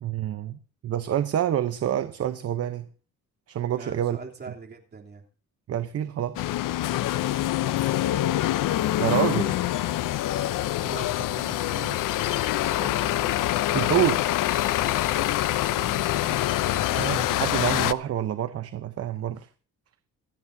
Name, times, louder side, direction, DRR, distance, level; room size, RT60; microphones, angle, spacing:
voice 1, 0.0-2.9 3.5-4.2 5.7-6.4 9.0-9.5 13.5-14.4 17.0-19.5, right 10 dB, 50° right, 0.8 m, -27 dB
voice 2, 3.6-5.2 7.6-8.0 10.8-12.3 12.6-13.5 15.6-16.4 16.7-17.0, right 4 dB, 30° right, 3.2 m, -43 dB
sound 1, 6.4-17.9, left 14 dB, 80° left, 0.6 m, -25 dB
27.0 x 9.4 x 2.7 m
cardioid pair, 155°, 31 cm